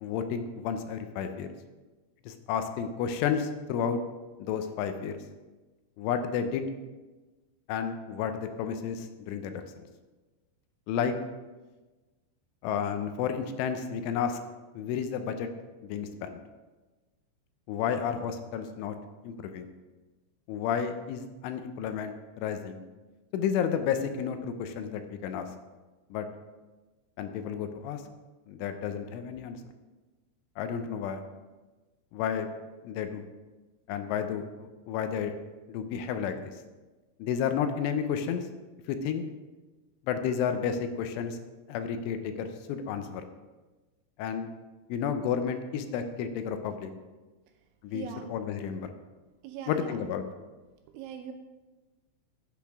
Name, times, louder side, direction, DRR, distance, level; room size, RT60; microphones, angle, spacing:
voice 1, 0.0-1.5 2.3-4.0 4.4-5.2 6.0-6.7 7.7-9.9 10.9-11.1 12.6-14.4 14.8-15.5 15.8-16.4 17.7-19.0 19.2-19.7 20.5-22.8 23.3-25.5 26.1-26.3 27.2-28.0 28.5-29.6 30.6-31.2 32.1-32.5 32.8-33.3 33.9-35.3 35.7-36.6 37.2-38.5 38.9-39.2 40.1-41.4 41.7-43.3 44.2-44.5 44.9-46.9 47.8-48.9 49.7-50.2, left 7 dB, 80° left, 8 dB, 3.0 m, -31 dB
voice 2, 47.9-48.3 49.4-50.0 50.9-51.3, right 8 dB, 80° right, 5 dB, 2.9 m, -40 dB
14.5 x 8.2 x 3.5 m, 1.2 s
omnidirectional pair, 5.8 m